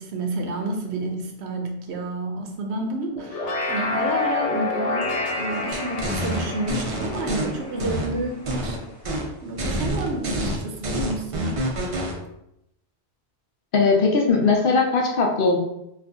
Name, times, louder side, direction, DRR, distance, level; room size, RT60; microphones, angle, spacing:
voice 1, 0.0-8.8 9.4-11.5, right 2 dB, 80° right, 2 dB, 0.9 m, -30 dB
sound 1, 3.2-8.7, left 3 dB, 90° left, 0.9 m, -28 dB
sound 2, 5.7-7.4 7.8-8.8 9.0-9.3 9.6-12.1, right 1 dB, 45° right, 0.4 m, -27 dB
voice 2, 13.7-15.6, left 4 dB, 60° left, 0 dB, 0.7 m, -19 dB
2.6 x 2.4 x 3.5 m, 0.83 s
omnidirectional pair, 1.1 m